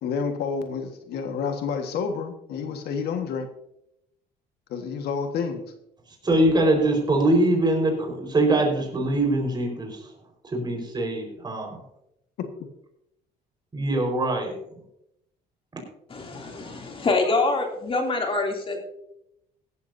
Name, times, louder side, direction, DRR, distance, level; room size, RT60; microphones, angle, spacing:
voice 1, 0.0-3.5 4.7-5.6 12.4-12.5, left 5 dB, 75° left, 6 dB, 1.6 m, -29 dB
voice 2, 6.2-10.0 10.4-11.8 13.7-14.5, right 1 dB, 25° right, 2 dB, 4.7 m, -23 dB
voice 3, 16.1-18.8, left 3 dB, 35° left, 2 dB, 2.9 m, -25 dB
16.5 x 13.0 x 2.7 m, 0.79 s
cardioid pair, 110°, 17 cm